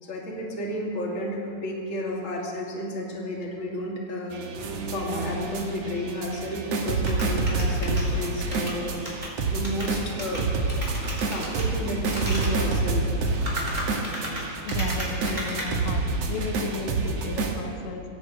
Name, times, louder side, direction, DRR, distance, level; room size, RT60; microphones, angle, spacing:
voice 1, 0.0-4.4 4.9-9.0 9.5-10.5 11.2-13.2, left 1 dB, 25° left, -3 dB, 2.0 m, -32 dB
sound 1, 4.3-17.5, right 3 dB, 55° right, 1.9 m, -28 dB
sound 2, 7.1-9.3 9.6-9.9 10.2-10.4 10.7-11.7 12.1-12.5 13.3-15.7, equal, 10° right, 3.6 m, -34 dB
voice 2, 14.6-18.0, left 5 dB, 80° left, 3 dB, 2.9 m, -35 dB
23.5 x 17.0 x 3.1 m, 2.6 s
omnidirectional pair, 4.2 m